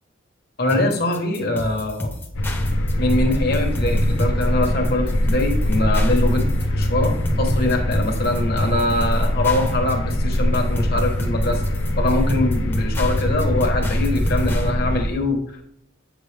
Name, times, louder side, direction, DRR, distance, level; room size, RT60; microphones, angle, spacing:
voice 1, 0.6-2.2 3.0-11.6 12.0-15.6, left 2 dB, 50° left, 2 dB, 1.3 m, -23 dB
sound 1, 0.7-14.7, left 1 dB, 10° left, 0.9 m, -31 dB
sound 2, 2.3-15.1, left 1 dB, 65° left, 0.8 m, -22 dB
sound 3, 2.6-12.1, equal, 75° right, 2.9 m, -42 dB
8.7 x 6.2 x 3.4 m, 0.70 s
head